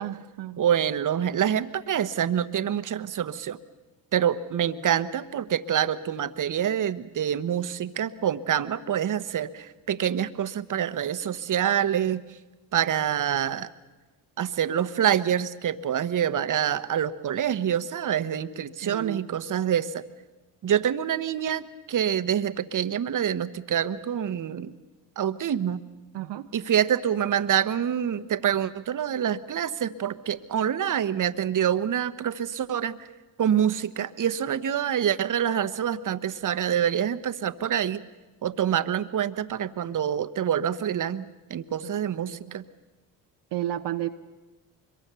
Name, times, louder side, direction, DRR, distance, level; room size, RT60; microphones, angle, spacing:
voice 1, 0.0-0.6 18.8-19.2 26.1-26.5 42.1-42.5 43.5-44.1, right 13 dB, 65° right, 6 dB, 0.9 m, -32 dB
voice 2, 0.6-3.6 4.1-12.2 12.7-13.7 14.4-20.0 20.6-24.7 25.2-25.8 26.5-33.0 33.4-38.0 38.4-41.2 41.5-42.6, right 9 dB, 45° right, 13 dB, 1.1 m, -26 dB
24.5 x 23.0 x 6.9 m, 1.2 s
supercardioid pair, 65°, 45 cm